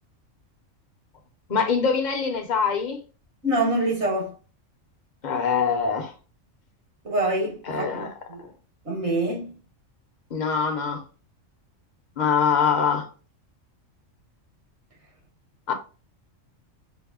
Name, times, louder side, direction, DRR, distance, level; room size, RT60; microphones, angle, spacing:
voice 1, 1.5-3.0 5.2-6.1 7.6-8.1 10.3-11.0 12.2-13.1 15.7-15.8, left 6 dB, 45° left, 0.7 m, -23 dB
voice 2, 3.4-4.3 7.0-8.0 8.3-8.4 8.9-9.6, right 1 dB, 60° right, 1.8 m, -25 dB
6.0 x 2.1 x 2.3 m
omnidirectional pair, 1.3 m